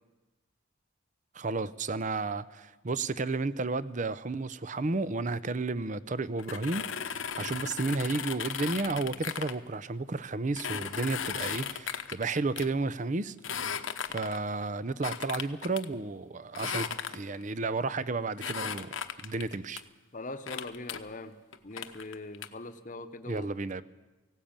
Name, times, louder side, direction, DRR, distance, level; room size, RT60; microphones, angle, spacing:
voice 1, 1.3-13.7 14.1-18.9 19.2-19.8 23.3-23.8, right 3 dB, 40° right, 0.6 m, -32 dB
sound 1, 6.4-9.5 10.6-12.7 13.4-14.5 15.0-15.8 16.5-17.4 18.4-19.8 20.5-21.0 21.5-22.5, left 7 dB, 75° left, 1.0 m, -36 dB
voice 2, 20.1-21.3 21.6-23.6, left 2 dB, 40° left, 0.9 m, -42 dB
18.5 x 16.5 x 8.8 m
head